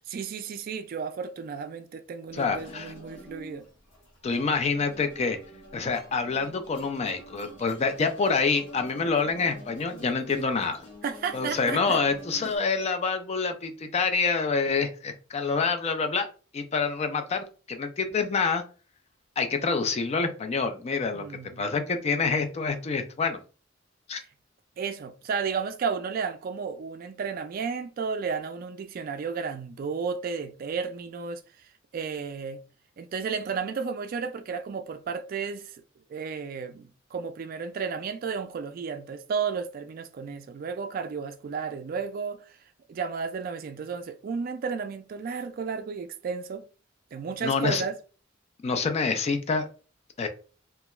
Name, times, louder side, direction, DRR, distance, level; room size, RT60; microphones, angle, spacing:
voice 1, 0.1-3.7 11.0-12.0 12.4-12.5 21.1-21.6 24.8-31.4 31.9-32.6 33.0-35.8 36.1-42.6 42.9-46.7 47.1-48.0, right 5 dB, 50° right, 0.3 m, -33 dB
sound 1, 2.3-12.6, equal, 70° left, 0.9 m, -47 dB
voice 2, 2.3-2.9 4.2-5.4 5.7-10.8 11.3-16.3 16.5-18.6 19.4-21.3 21.6-23.4 24.1-24.2 47.4-47.8 48.6-49.7 50.2-50.3, left 4 dB, 35° left, 0.3 m, -27 dB
2.3 x 2.2 x 2.9 m
head